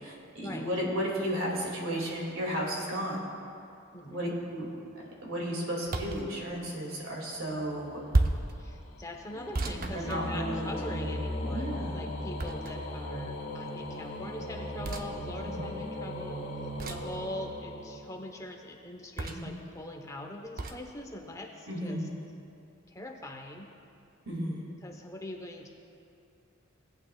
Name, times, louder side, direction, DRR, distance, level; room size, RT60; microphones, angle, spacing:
voice 1, 0.0-3.3 4.1-4.7 5.2-8.0 9.6-11.1 11.4-12.0 15.3-15.7 19.2-19.6 21.7-22.2 24.3-24.7, equal, 85° right, -2 dB, 2.3 m, -34 dB
voice 2, 3.9-4.4 8.6-16.5 16.9-22.0 22.9-23.7 24.8-25.7, left 1 dB, 15° left, 1 dB, 0.9 m, -42 dB
sound 1, 5.9-6.3 8.1-8.5 9.5-10.7 12.4-13.0 14.8-15.1 16.8-17.2 19.2-19.6 20.6-20.8, right 2 dB, 45° right, 0.6 m, -31 dB
sound 2, 7.5-18.4, left 1 dB, 70° left, 1.6 m, -38 dB
17.5 x 8.7 x 2.3 m, 2.6 s
head